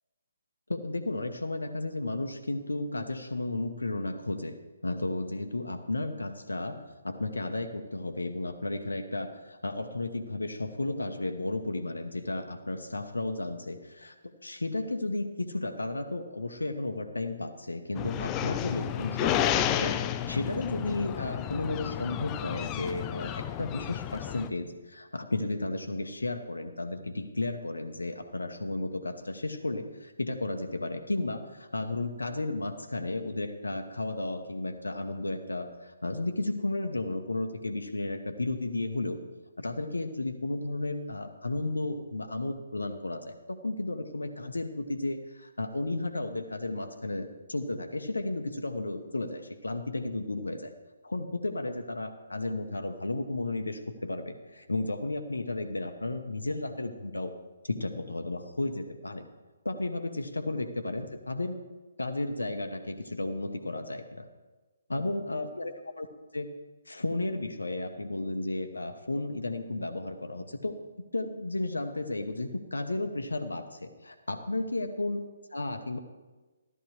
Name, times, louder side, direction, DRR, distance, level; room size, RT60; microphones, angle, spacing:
voice 1, 0.7-4.6 4.8-39.2 39.6-50.7 51.0-57.4 57.6-59.3 59.6-61.6 62.0-64.3 64.9-66.1 66.3-66.5 66.9-75.2 75.5-76.0, left 2 dB, 75° left, 6 dB, 1.0 m, -33 dB
sound 1, 17.9-24.5, left 11 dB, 20° left, 0.4 m, -31 dB
14.5 x 12.0 x 3.3 m, 1.2 s
figure-of-eight pair, 135°, 0 cm